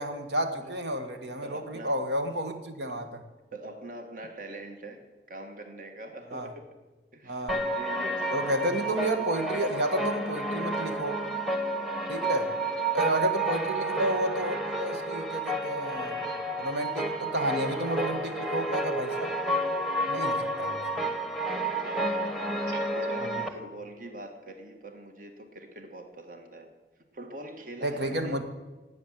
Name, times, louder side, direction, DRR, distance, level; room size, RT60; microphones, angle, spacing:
voice 1, 0.0-3.2 6.3-6.5 7.2-7.6 8.3-11.2 12.1-12.5 12.9-16.3 16.6-19.3 20.1-20.8 22.7-22.9 27.8-28.4, right 1 dB, 80° right, 7 dB, 1.6 m, -31 dB
voice 2, 1.4-2.0 2.9-3.0 3.5-6.8 7.1-9.9 10.6-10.9 12.3-13.3 17.4-17.8 19.1-19.2 19.9-20.1 21.4-26.7 27.1-28.4, right 1 dB, 50° right, 5 dB, 1.6 m, -44 dB
sound 1, 7.5-23.5, right 1 dB, ahead, 1.1 m, -30 dB
17.5 x 9.0 x 7.5 m, 1.2 s
head